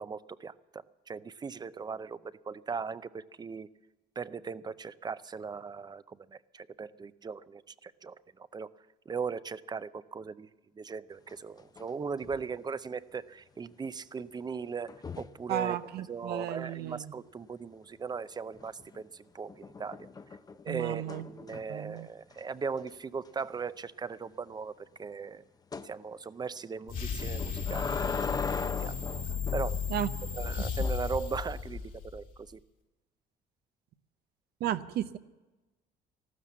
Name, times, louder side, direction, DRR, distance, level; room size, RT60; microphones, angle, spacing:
voice 1, 0.0-3.7 4.2-8.7 9.1-10.5 10.8-15.8 16.1-20.1 20.6-25.4 25.8-28.5 28.8-28.9 29.5-29.8 30.3-31.8 32.1-32.6, right 5 dB, 25° right, 16 dB, 0.6 m, -38 dB
sound 1, 11.3-11.9 12.2-12.6 14.9-15.4 18.5-19.0 19.5-21.9 22.3-22.4 22.8-22.9 23.3-23.4 25.7-25.9 27.2-29.7 30.5-30.9, left 4 dB, 20° left, 0.6 m, -39 dB
voice 2, 15.5-17.1 20.7-21.2 21.7-22.1 29.9-30.1 34.6-35.2, right 11 dB, 70° right, 11 dB, 0.8 m, -33 dB
sound 2, 26.9-32.3, left 6 dB, 55° left, 1.9 m, -34 dB
14.5 x 12.5 x 7.4 m, 1.1 s
cardioid pair, 110°, 17 cm